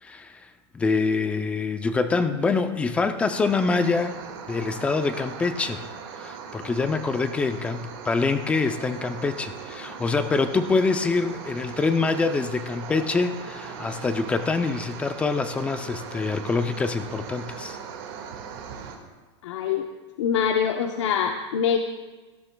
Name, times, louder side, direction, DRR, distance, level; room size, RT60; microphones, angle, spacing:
voice 1, 0.0-0.4 0.7-4.2 4.5-5.8 6.2-17.8, left 4 dB, 10° left, 9 dB, 0.4 m, -25 dB
sound 1, 3.3-19.0, right 6 dB, 50° right, 1.9 m, -39 dB
voice 2, 19.4-19.9 20.2-21.8, left 8 dB, 75° left, 4 dB, 0.8 m, -24 dB
18.0 x 13.0 x 2.3 m, 1.3 s
supercardioid pair, 160°, 15 cm